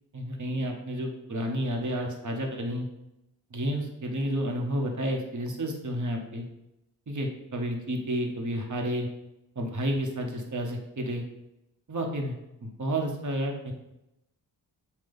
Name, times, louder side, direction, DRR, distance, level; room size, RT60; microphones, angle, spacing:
voice 1, 0.1-2.9 3.5-6.4 7.1-9.1 9.5-11.2 11.9-12.3 12.6-13.7, equal, 45° right, 2 dB, 1.5 m, -31 dB
7.8 x 2.7 x 5.4 m, 0.90 s
cardioid pair, 60°, 42 cm